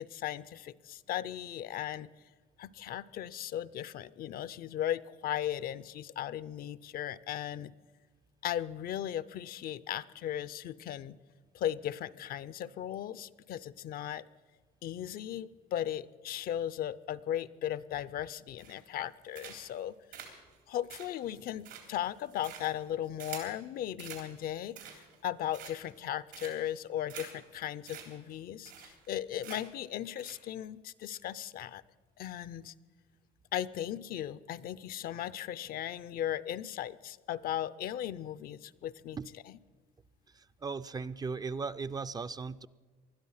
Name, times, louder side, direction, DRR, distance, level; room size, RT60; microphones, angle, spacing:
voice 1, 0.0-2.1 2.6-7.7 8.4-11.2 11.5-14.2 14.8-20.3 20.7-31.8 32.2-32.7 33.5-39.2 39.5-39.6, left 11 dB, 60° left, 18 dB, 0.5 m, -37 dB
sound 1, 18.6-19.0 19.3-19.8 20.1-23.6 24.0-24.3 24.6-25.2 25.5-26.0 26.3-26.7 27.1-27.3 27.5-27.6 27.9-28.0 28.3-28.4 28.7-29.1 29.4-29.8 30.2-30.4, right 9 dB, 90° right, 3.5 m, -47 dB
voice 2, 40.6-42.7, right 4 dB, 25° right, 13 dB, 0.4 m, -37 dB
20.5 x 12.5 x 5.6 m, 1.4 s
cardioid pair, 110°, 17 cm